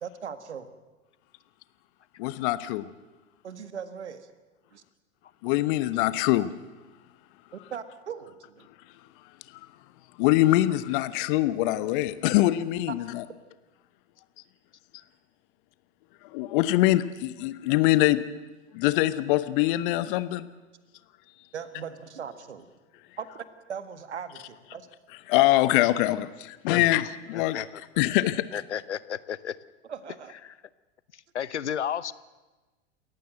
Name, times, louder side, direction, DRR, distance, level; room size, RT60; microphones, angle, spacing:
voice 1, 0.0-0.7 3.4-4.3 4.7-4.8 7.5-8.7 21.5-22.6 23.2-24.9 29.9-30.3, right 7 dB, 75° right, 11 dB, 1.8 m, -39 dB
voice 2, 2.2-2.9 5.4-6.5 10.2-13.2 16.3-18.2 18.7-20.5 25.3-27.7 28.0-28.6, left 16 dB, 45° left, 14 dB, 1.2 m, -24 dB
voice 3, 27.3-27.7 28.5-29.5 30.4-30.5 31.3-32.1, left 9 dB, 75° left, 18 dB, 0.8 m, -32 dB
28.0 x 14.5 x 7.8 m, 1.2 s
figure-of-eight pair, 90°, 35 cm